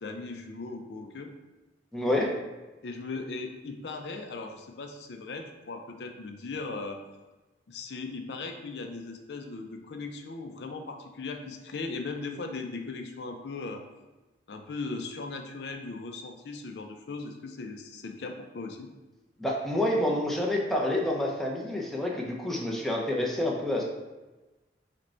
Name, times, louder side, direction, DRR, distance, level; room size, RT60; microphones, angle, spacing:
voice 1, 0.0-1.3 2.8-7.0 7.7-13.8 14.5-18.9, left 3 dB, 70° left, 5 dB, 0.4 m, -38 dB
voice 2, 1.9-2.4 19.4-23.8, left 1 dB, ahead, -2 dB, 0.6 m, -28 dB
5.0 x 2.2 x 4.3 m, 1.1 s
head